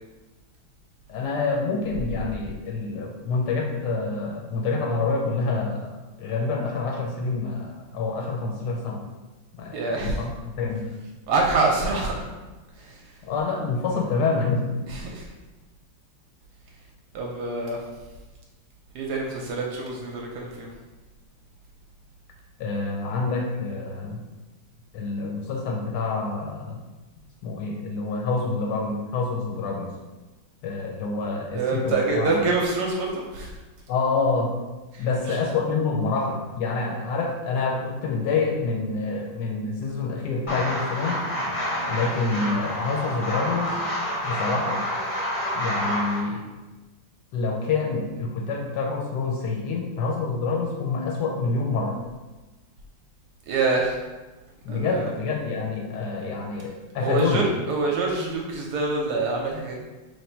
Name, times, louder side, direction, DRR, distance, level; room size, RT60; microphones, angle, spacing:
voice 1, 1.1-5.9 6.2-9.0 9.6-10.9 13.2-14.9 22.6-24.2 24.9-26.8 27.4-29.9 30.6-32.4 33.9-34.5 35.0-41.2 41.9-43.7 44.2-44.9 45.5-46.4 47.3-52.0 54.6-57.5, left 4 dB, 75° left, 1 dB, 1.1 m, -27 dB
voice 2, 9.7-10.2 11.3-12.3 12.8-13.0 14.9-15.3 17.1-17.8 18.9-20.7 31.5-33.5 34.9-35.4 53.5-54.0 54.7-55.1 57.0-59.8, right 3 dB, 70° right, -1 dB, 1.0 m, -26 dB
sound 1, 40.5-46.2, equal, 40° left, 0.7 m, -28 dB
3.2 x 2.5 x 4.3 m, 1.2 s
omnidirectional pair, 2.0 m